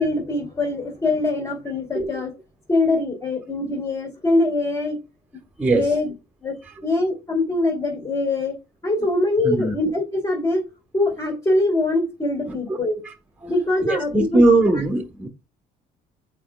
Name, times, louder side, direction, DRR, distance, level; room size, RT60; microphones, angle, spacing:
voice 1, 0.0-2.3 2.7-5.0 5.7-6.1 6.4-6.5 6.8-8.5 8.8-10.6 10.9-13.0 13.5-14.4, left 2 dB, 20° left, 2.5 m, -23 dB
voice 2, 12.5-12.8 13.4-13.5 13.8-15.3, right 2 dB, 10° right, 1.3 m, -20 dB
8.7 x 4.9 x 2.3 m
cardioid pair, 110°, 17 cm